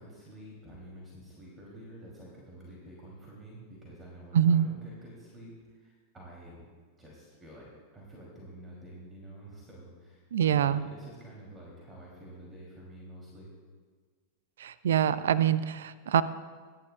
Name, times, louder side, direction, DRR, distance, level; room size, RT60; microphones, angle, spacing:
voice 1, 0.0-6.6 7.0-13.5, right 1 dB, 15° right, -4 dB, 2.9 m, -49 dB
voice 2, 4.3-4.7 10.3-10.9 14.6-16.2, right 9 dB, 60° right, 17 dB, 0.4 m, -25 dB
24.0 x 10.5 x 2.3 m, 1.5 s
figure-of-eight pair, 90°, 0 cm